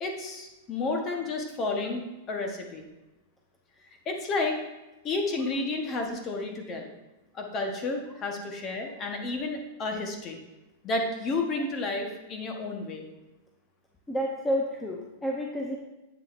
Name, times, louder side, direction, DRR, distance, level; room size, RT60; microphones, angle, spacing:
voice 1, 0.0-2.9 4.1-4.6 5.0-6.9 7.3-10.4 10.8-13.0, left 3 dB, 25° left, 3 dB, 1.0 m, -31 dB
voice 2, 14.1-15.8, equal, 5° left, -1 dB, 0.6 m, -30 dB
8.1 x 7.4 x 2.5 m, 1.1 s
supercardioid pair, 160°, 0 cm